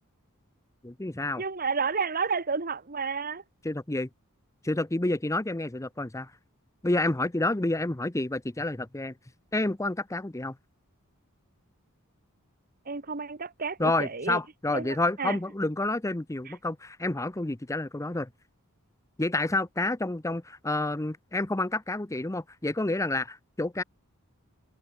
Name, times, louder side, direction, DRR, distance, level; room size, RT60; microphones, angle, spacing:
voice 1, 0.8-1.4 3.6-4.1 4.6-6.3 6.8-9.1 9.5-10.6 13.8-18.3 19.2-23.8, left 2 dB, 15° left, 0.7 m, -29 dB
voice 2, 1.4-3.4 12.8-14.4 14.7-15.4 16.5-16.6, right 5 dB, 40° right, 1.6 m, -31 dB
head